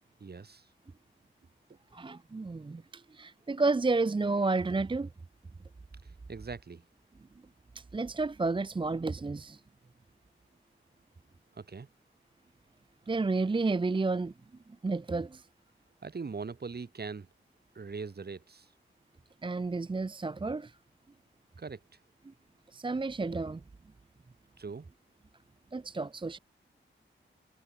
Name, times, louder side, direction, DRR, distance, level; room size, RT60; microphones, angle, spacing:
voice 1, 0.2-0.7 6.0-6.8 11.5-11.9 16.0-17.3 17.7-18.7 21.6-21.8 24.6-24.9, right 4 dB, 50° right, 2.5 m, -41 dB
voice 2, 1.9-5.1 7.7-9.6 13.1-14.3 14.8-15.5 19.4-20.8 22.3-22.4 22.7-23.6 25.7-26.4, right 3 dB, 25° right, 0.6 m, -31 dB
wide cardioid pair, 80°, 21 cm